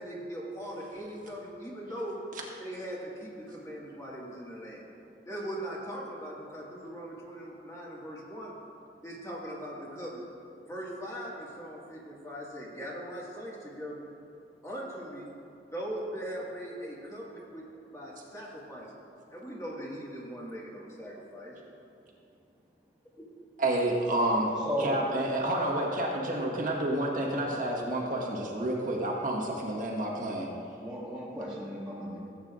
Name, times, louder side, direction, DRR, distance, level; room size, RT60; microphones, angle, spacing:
voice 1, 0.0-2.2 2.6-4.8 5.3-8.5 9.0-10.3 10.7-14.1 14.6-15.3 15.7-17.6 17.9-21.6, equal, 20° left, -5 dB, 1.8 m, -40 dB
voice 2, 23.6-24.5 24.8-30.5, right 1 dB, 50° right, -2 dB, 1.4 m, -29 dB
voice 3, 24.6-25.0 30.8-32.2, equal, 5° right, -9 dB, 1.2 m, -34 dB
16.5 x 8.6 x 2.5 m, 2.8 s
head